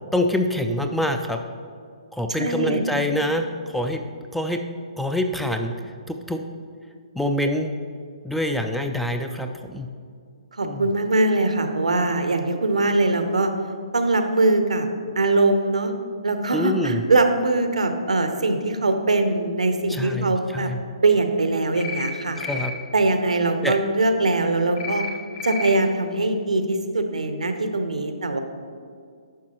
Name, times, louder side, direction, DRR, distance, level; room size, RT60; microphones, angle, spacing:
voice 1, 0.1-1.4 2.1-4.0 4.3-4.6 5.0-5.7 6.1-6.4 7.2-7.7 8.2-9.9 10.6-10.9 16.5-17.0 19.9-20.8 22.4-22.7 23.6-23.8, left 1 dB, ahead, 5 dB, 0.3 m, -25 dB
voice 2, 2.3-2.9 10.6-13.5 13.9-14.9 15.1-15.9 16.2-20.7 21.0-22.4 22.9-25.0 25.4-28.4, right 2 dB, 75° right, 7 dB, 0.8 m, -22 dB
sound 1, 21.8-22.1 22.4-22.7 24.8-25.1 25.4-25.7, left 5 dB, 30° left, 1.1 m, -30 dB
10.0 x 6.0 x 2.9 m, 2.2 s
figure-of-eight pair, 130°, 4 cm